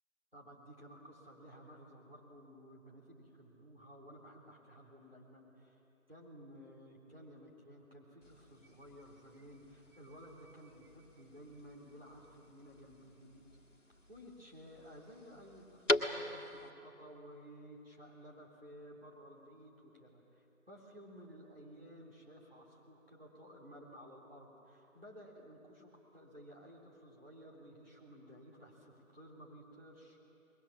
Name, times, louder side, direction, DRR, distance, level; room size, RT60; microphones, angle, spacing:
voice 1, 0.3-5.8 6.1-13.4 14.1-30.2, equal, 40° right, -3 dB, 3.5 m, -55 dB
sound 1, 8.2-16.7, left 1 dB, 60° left, 1.7 m, -42 dB
26.0 x 21.5 x 7.3 m, 2.9 s
figure-of-eight pair, 180°, 42 cm